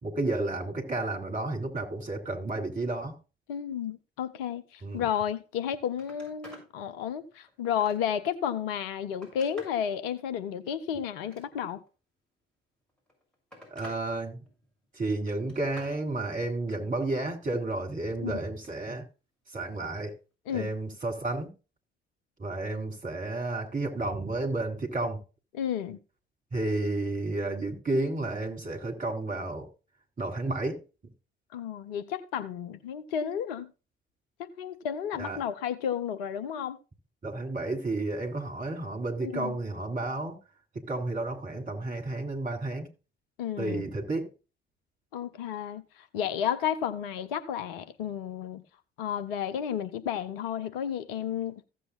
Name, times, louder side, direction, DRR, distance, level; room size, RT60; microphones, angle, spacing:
voice 1, 0.0-3.1 4.8-5.0 13.7-14.4 14.9-19.0 19.5-20.1 20.5-21.5 22.4-25.2 26.5-29.7 30.2-30.8 35.2-35.4 37.2-40.4 40.9-42.9 43.6-44.3, right 2 dB, 25° right, 3.7 m, -31 dB
voice 2, 3.5-11.8 18.2-18.3 20.5-20.7 25.5-26.0 31.5-33.7 34.4-36.8 39.2-39.5 43.4-43.8 45.1-45.8 46.1-48.6 49.0-51.6, left 9 dB, 65° left, 1.0 m, -32 dB
Telephone, 5.5-5.6 5.9-6.7 7.2-8.3 8.8-9.8 11.1-11.9 12.9-14.0 14.4-14.8 15.3-16.0 18.4-18.8 20.2-20.3, equal, 5° left, 6.9 m, -51 dB
15.5 x 8.0 x 2.5 m
figure-of-eight pair, 50°, 30 cm